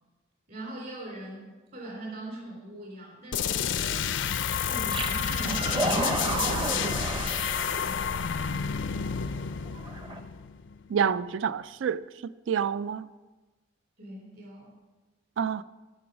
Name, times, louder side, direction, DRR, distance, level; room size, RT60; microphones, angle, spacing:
voice 1, 0.5-4.0 4.6-8.5 14.0-14.7, right 1 dB, 50° right, 3.3 m, -42 dB
sound 1, 3.3-10.9, left 7 dB, 65° left, 0.5 m, -30 dB
sound 2, 4.9-8.1 9.0-9.1 9.8-10.2, right 1 dB, 25° right, 0.8 m, -31 dB
voice 2, 10.9-12.0 12.5-13.1 15.4-15.6, right 7 dB, 75° right, 0.4 m, -27 dB
13.5 x 6.1 x 5.1 m
head